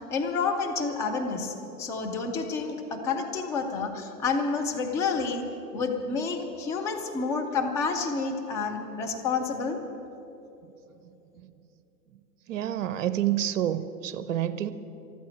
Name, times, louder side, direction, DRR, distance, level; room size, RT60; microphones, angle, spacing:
voice 1, 0.0-5.5 5.7-9.8, left 4 dB, 5° left, 3 dB, 0.4 m, -29 dB
voice 2, 12.5-14.7, right 11 dB, 50° right, 13 dB, 1.0 m, -28 dB
14.0 x 12.5 x 7.6 m, 3.0 s
hypercardioid pair, 125°, 47 cm